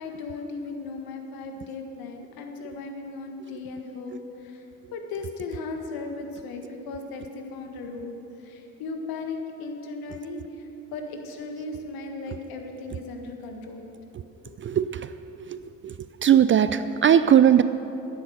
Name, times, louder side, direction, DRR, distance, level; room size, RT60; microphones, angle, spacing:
voice 1, 0.0-4.7 4.9-13.9 14.5-14.6, left 3 dB, 60° left, 4 dB, 1.8 m, -37 dB
voice 2, 14.6-15.1 15.5-15.6 15.8-15.9 16.2-17.6, right 9 dB, 30° right, 13 dB, 0.4 m, -19 dB
12.5 x 10.5 x 6.5 m, 2.9 s
hypercardioid pair, 55°, 40 cm